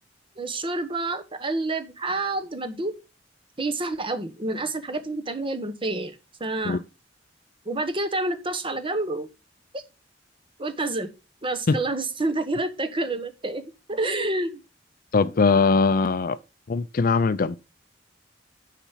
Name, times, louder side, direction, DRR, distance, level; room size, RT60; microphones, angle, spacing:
voice 1, 0.4-2.9 3.6-6.8 7.6-9.3 9.7-9.8 10.6-11.1 11.4-14.6, right 2 dB, 30° right, 1.1 m, -28 dB
voice 2, 15.1-16.4 16.7-17.6, left 4 dB, 50° left, 0.5 m, -21 dB
7.0 x 5.9 x 5.7 m
head